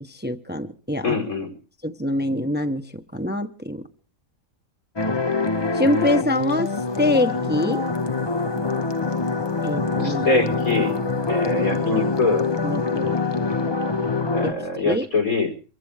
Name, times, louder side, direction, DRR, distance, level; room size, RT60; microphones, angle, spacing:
voice 1, 0.0-1.2 1.8-3.8 5.7-6.7 7.0-7.8 9.6-10.3 12.6-13.1 14.4-15.1, left 1 dB, 10° right, 0.9 m, -25 dB
voice 2, 1.0-1.5 10.0-11.0 11.3-12.4 14.3-15.5, left 3 dB, 85° left, 5.2 m, -23 dB
sound 1, 5.0-14.5, left 4 dB, 25° left, 0.7 m, -24 dB
24.5 x 15.5 x 3.5 m
omnidirectional pair, 1.4 m